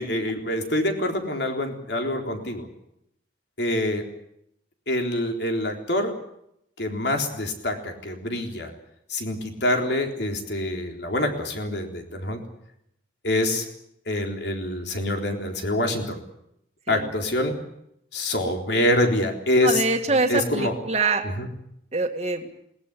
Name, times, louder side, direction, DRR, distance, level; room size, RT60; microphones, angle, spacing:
voice 1, 0.0-2.7 3.6-4.0 4.9-6.1 6.8-8.7 9.1-12.4 13.2-13.6 14.1-16.2 16.9-17.6 18.1-19.8 20.3-20.7 21.2-21.5, left 1 dB, 70° left, 4 dB, 3.8 m, -25 dB
voice 2, 19.6-21.2 21.9-22.5, right 3 dB, 35° right, 5 dB, 1.9 m, -24 dB
21.5 x 18.0 x 10.0 m, 0.77 s
head